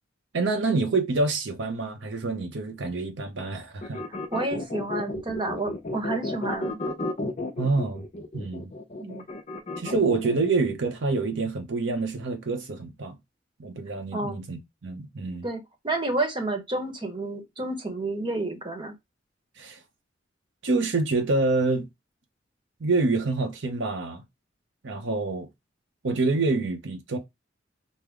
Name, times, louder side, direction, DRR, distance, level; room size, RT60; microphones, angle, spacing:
voice 1, 0.3-4.0 7.6-8.0 8.3-8.7 9.8-13.2 13.6-15.5 19.6-19.8 20.6-21.9 22.8-24.2 24.8-25.5 26.0-27.2, right 3 dB, 70° right, 0.7 m, -27 dB
sound 1, 3.8-10.5, left 2 dB, 35° left, 0.7 m, -33 dB
voice 2, 4.3-6.8 9.0-9.2 14.1-14.4 15.4-18.9, right 2 dB, 25° right, 1.0 m, -30 dB
5.2 x 2.1 x 3.5 m
head